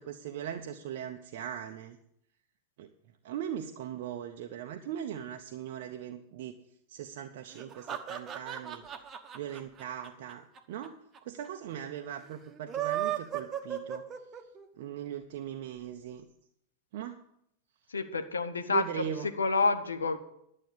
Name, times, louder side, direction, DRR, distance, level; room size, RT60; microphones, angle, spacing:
voice 1, 0.0-2.0 2.8-2.9 3.2-6.5 6.9-8.8 9.3-14.0 14.8-16.3 16.9-17.2 18.7-19.3, right 10 dB, 50° right, 5 dB, 0.7 m, -39 dB
sound 1, 7.5-10.9 11.1-11.2 11.4-11.5 12.5-14.7, right 11 dB, 25° right, 1.1 m, -35 dB
voice 2, 17.9-19.1 19.4-20.2, left 4 dB, 75° left, 10 dB, 0.9 m, -28 dB
11.5 x 7.5 x 6.7 m, 0.75 s
figure-of-eight pair, 90°, 0 cm